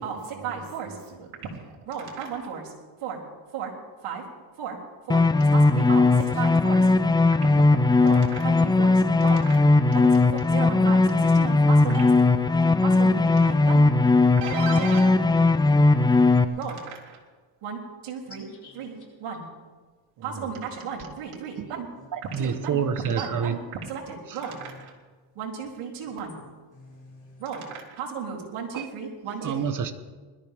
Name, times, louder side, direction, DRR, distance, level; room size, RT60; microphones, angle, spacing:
voice 1, 0.0-2.7 3.0-3.2 3.5-3.7 4.0-4.2 4.6-4.8 5.1-5.2 5.5-6.9 8.0-12.3 12.8-13.1 13.4-13.8 14.4-15.4 16.5-17.2 17.6-18.5 18.7-19.4 20.2-21.9 22.4-22.8 23.1-23.6 23.9-24.9 25.4-26.4 27.4-29.6, right 6 dB, 80° right, -4 dB, 3.7 m, -35 dB
sound 1, 5.1-16.4, left 3 dB, 10° left, 0.4 m, -19 dB
voice 2, 15.7-16.6 18.2-19.0 22.0-22.1 22.4-22.5 26.0-26.1 26.7-27.4, left 3 dB, 35° left, -3 dB, 4.7 m, -50 dB
voice 3, 22.1-23.6 24.3-24.4 28.7-28.9 29.2-29.9, right 7 dB, 40° right, 10 dB, 1.2 m, -28 dB
21.0 x 13.5 x 3.7 m, 1.4 s
cardioid pair, 120°, 50 cm